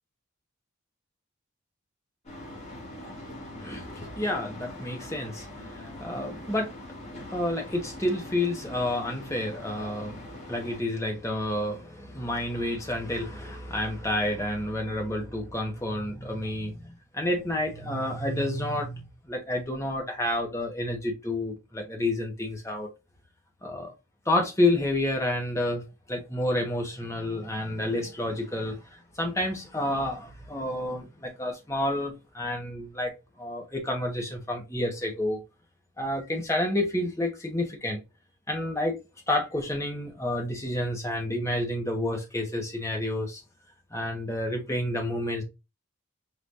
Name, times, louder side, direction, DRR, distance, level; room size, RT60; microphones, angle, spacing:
sound 1, 2.2-10.8, left 1 dB, 35° left, 1.9 m, -42 dB
voice 1, 3.6-5.5 5.7-6.7 7.3-22.9 23.6-23.9 24.3-25.8 26.1-28.8 29.2-33.1 33.4-35.4 36.0-38.0 38.5-39.0 39.3-43.4 43.9-45.4, left 1 dB, 15° left, 1.1 m, -29 dB
5.0 x 3.0 x 2.5 m
head